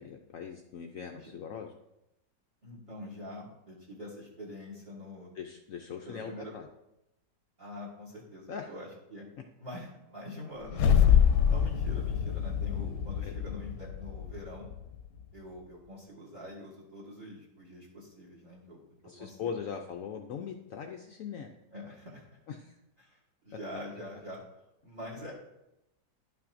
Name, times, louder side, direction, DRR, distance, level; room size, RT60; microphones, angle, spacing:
voice 1, 0.0-1.7 5.3-6.7 8.5-8.7 13.2-13.3 19.0-21.5 22.5-22.8, left 7 dB, 70° left, 3 dB, 0.8 m, -40 dB
voice 2, 2.6-5.3 6.0-6.5 7.6-9.3 9.6-11.2 11.5-14.7 15.3-19.5 21.7-22.3 23.0-23.2 23.4-24.4 24.8-25.4, left 1 dB, 30° right, -3 dB, 1.8 m, -45 dB
sound 1, 10.6-15.0, left 8 dB, 90° left, 1.3 m, -26 dB
11.0 x 5.8 x 2.6 m, 0.88 s
omnidirectional pair, 1.8 m